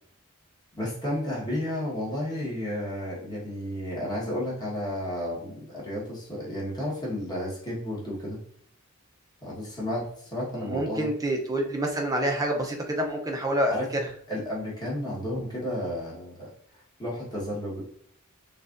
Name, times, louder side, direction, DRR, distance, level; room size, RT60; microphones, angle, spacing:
voice 1, 0.8-8.4 9.4-11.1 13.7-13.9 14.3-16.5 17.0-17.8, left 1 dB, 20° left, -6 dB, 1.3 m, -32 dB
voice 2, 10.5-13.7, right 1 dB, 15° right, 2 dB, 0.6 m, -27 dB
6.5 x 2.4 x 2.5 m, 0.64 s
head